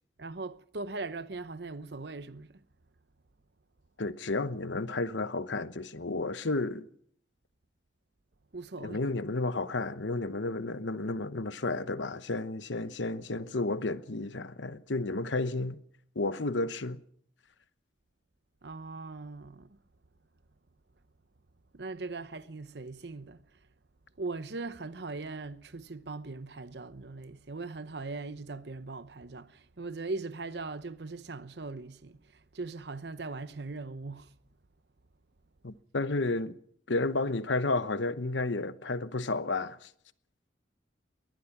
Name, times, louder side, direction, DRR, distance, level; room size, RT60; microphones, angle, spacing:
voice 1, 0.2-2.5 8.5-9.0 18.6-19.8 21.7-23.4 24.2-32.2 32.5-34.3, right 3 dB, 65° right, 0.9 m, -40 dB
voice 2, 4.0-6.9 8.8-15.8 16.1-17.0 35.6-36.6 36.9-39.9, left 2 dB, 90° left, 1.0 m, -32 dB
22.0 x 20.0 x 6.0 m
head